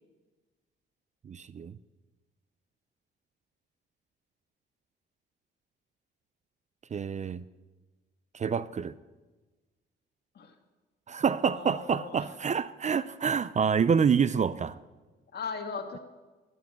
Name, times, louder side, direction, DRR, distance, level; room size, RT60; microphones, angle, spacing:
voice 1, 1.2-1.8 6.9-7.4 8.3-8.9 11.1-14.8, right 6 dB, 35° right, 0.5 m, -27 dB
voice 2, 11.5-12.2 15.3-16.0, left 5 dB, 55° left, 2.3 m, -38 dB
13.5 x 9.5 x 8.8 m
cardioid pair, 90°, 20 cm